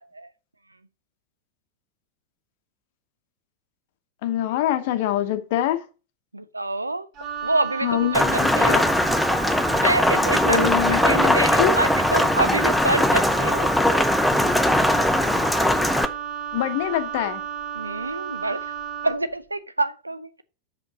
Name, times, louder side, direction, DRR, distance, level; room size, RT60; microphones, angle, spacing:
voice 1, 4.2-5.8 7.8-9.0 10.5-11.7 16.5-17.4, left 11 dB, 50° left, 0.9 m, -25 dB
voice 2, 6.3-7.1 7.4-8.8 9.8-14.1 17.7-18.7 19.0-20.4, right 2 dB, 85° right, 0.6 m, -26 dB
Wind instrument woodwind instrument, 7.1-19.2, right 8 dB, 40° right, 2.4 m, -33 dB
Rain, 8.1-16.1, left 1 dB, 5° left, 0.7 m, -20 dB
6.2 x 5.4 x 6.5 m
figure-of-eight pair, 90°, 0 cm